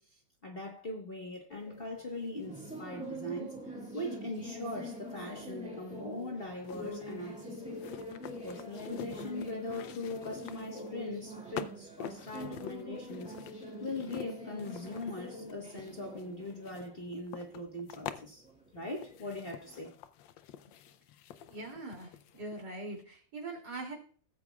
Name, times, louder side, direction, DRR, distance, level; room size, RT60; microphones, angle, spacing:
voice 1, 0.0-7.8 8.4-13.3 13.8-18.4 18.7-19.9, left 2 dB, 35° left, 1.4 m, -41 dB
sound 1, 1.5-19.9, equal, 5° right, 1.9 m, -45 dB
sound 2, 5.1-5.2 6.6-10.9 11.6-18.2 18.9-22.7 22.9-23.0, left 10 dB, 85° left, 1.4 m, -47 dB
voice 2, 21.5-23.9, right 2 dB, 60° right, 3.4 m, -42 dB
17.5 x 8.3 x 2.4 m
omnidirectional pair, 2.0 m